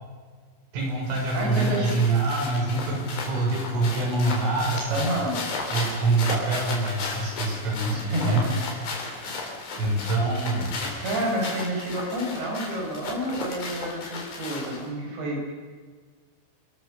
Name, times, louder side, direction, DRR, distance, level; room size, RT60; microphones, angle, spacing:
voice 1, 0.7-5.0 5.7-8.5 8.8-8.9 9.8-10.8, right 2 dB, 85° right, 0 dB, 8.6 m, -25 dB
sound 1, 0.8-14.9, left 3 dB, 60° left, 6.2 m, -35 dB
voice 2, 1.3-2.0 4.9-5.4 7.9-8.4 10.8-15.5, right 1 dB, 65° right, -1 dB, 8.7 m, -29 dB
29.5 x 21.5 x 6.7 m, 1.5 s
omnidirectional pair, 5.6 m